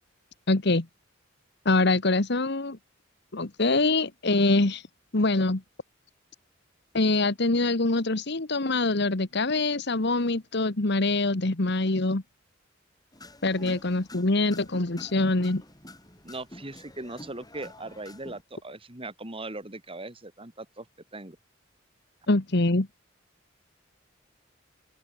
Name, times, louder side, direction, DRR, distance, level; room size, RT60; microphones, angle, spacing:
voice 1, 0.5-0.9 1.6-2.8 3.3-4.8 5.1-5.6 6.9-12.2 13.4-15.6 22.3-22.9, left 2 dB, 60° left, 1.5 m, -24 dB
sound 1, 13.1-18.4, left 1 dB, 20° left, 6.5 m, -48 dB
voice 2, 16.2-20.9 21.1-21.4, right 2 dB, 30° right, 3.4 m, -39 dB
open air
head